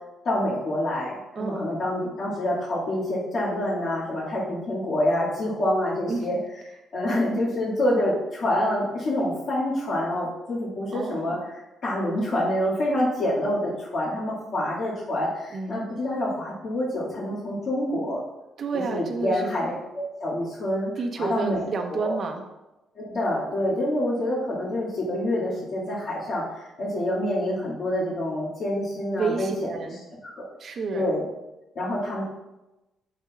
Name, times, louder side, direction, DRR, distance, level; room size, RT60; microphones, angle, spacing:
voice 1, 0.2-6.4 6.9-18.2 18.9-20.9 21.2-22.1 23.0-29.5 30.2-31.2 31.7-32.2, left 1 dB, 55° left, -11 dB, 2.2 m, -27 dB
voice 2, 1.3-1.7 6.1-6.3 10.9-11.4 15.5-15.8 18.6-19.6 21.0-22.4 29.1-30.0 30.6-31.1, right 4 dB, 55° right, 4 dB, 1.0 m, -30 dB
8.4 x 6.2 x 2.5 m, 1.0 s
cardioid pair, 90°, 0 cm